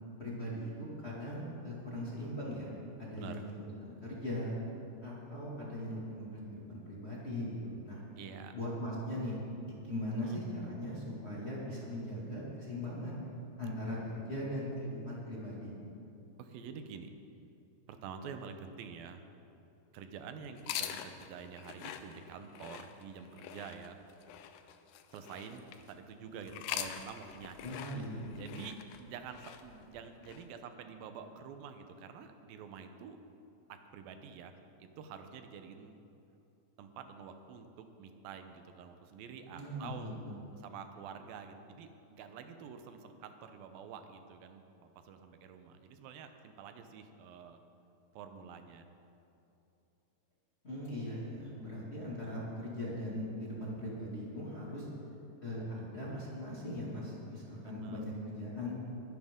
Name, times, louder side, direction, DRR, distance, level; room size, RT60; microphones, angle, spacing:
voice 1, 0.2-2.7 3.0-3.4 3.8-4.5 5.0-8.0 8.5-9.4 9.6-13.2 13.6-15.7 27.6-28.3 39.5-40.4 50.6-54.9 55.4-58.7, left 1 dB, 25° left, -7 dB, 1.8 m, -39 dB
voice 2, 3.1-3.4 8.2-8.6 10.2-10.4 16.4-17.1 17.9-19.2 19.9-24.0 25.1-27.6 27.9-28.0 28.3-33.2 33.7-34.5 34.8-36.0 36.8-40.2 40.6-47.6 48.1-48.9 57.6-58.0, right 6 dB, 85° right, 7 dB, 2.6 m, -48 dB
sound 1, 20.6-25.9 26.4-30.5, left 10 dB, 90° left, 2.4 m, -44 dB
21.5 x 10.5 x 3.7 m, 2.8 s
omnidirectional pair, 4.0 m